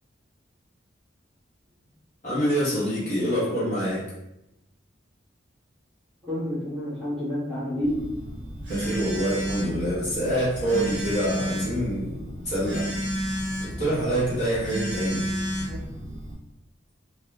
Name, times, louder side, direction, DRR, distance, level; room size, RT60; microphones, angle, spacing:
voice 1, 2.2-4.1 8.7-12.9 13.6-15.2, equal, 40° left, -9 dB, 1.4 m, -26 dB
voice 2, 6.2-8.1 15.0-15.8, equal, ahead, -13 dB, 1.5 m, -30 dB
Telephone, 7.8-16.3, equal, 65° right, 1.3 m, -31 dB
2.8 x 2.7 x 3.2 m, 0.89 s
head